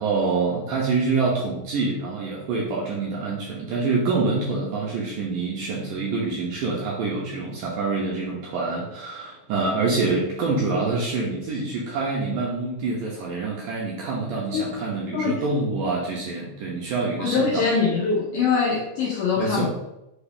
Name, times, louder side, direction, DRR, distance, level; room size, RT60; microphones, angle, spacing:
voice 1, 0.0-17.7 19.4-19.7, right 3 dB, 80° right, -3 dB, 2.0 m, -26 dB
voice 2, 15.1-15.4 17.2-19.7, left 5 dB, 90° left, -3 dB, 1.8 m, -23 dB
5.8 x 2.4 x 3.4 m, 0.89 s
omnidirectional pair, 4.4 m